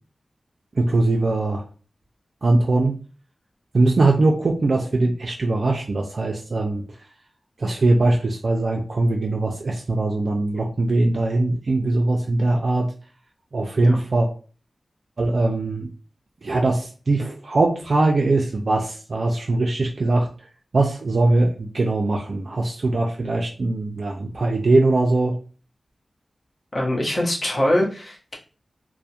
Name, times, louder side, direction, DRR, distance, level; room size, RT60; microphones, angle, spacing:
voice 1, 0.8-1.6 2.4-2.9 3.7-6.8 7.6-12.9 13.5-14.3 15.2-15.9 16.4-20.3 20.7-25.3, right 2 dB, 65° right, 0 dB, 0.3 m, -21 dB
voice 2, 26.7-28.3, left 1 dB, 45° left, -2 dB, 0.7 m, -23 dB
2.3 x 2.0 x 2.7 m, 0.38 s
wide cardioid pair, 95°, 0 cm